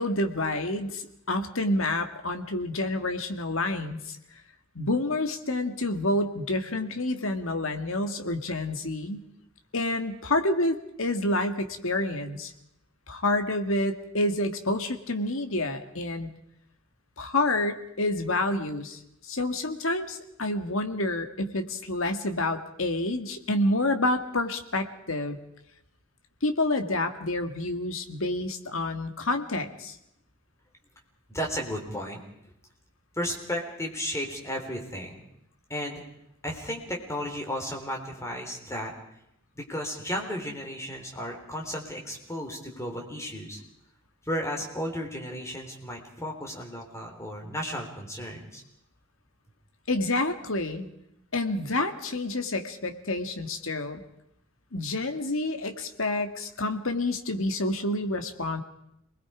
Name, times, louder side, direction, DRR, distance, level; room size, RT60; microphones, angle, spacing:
voice 1, 0.0-4.2 4.8-9.2 9.7-12.5 13.1-16.3 17.2-25.4 26.4-30.0 49.9-50.9 51.3-54.0 54.7-58.6, left 2 dB, 70° left, 7 dB, 1.9 m, -28 dB
voice 2, 31.3-32.2 33.2-35.2 35.7-36.0 36.4-38.9 39.6-43.6 44.3-48.6, equal, 15° left, 1 dB, 3.7 m, -34 dB
27.0 x 20.5 x 5.0 m, 0.78 s
head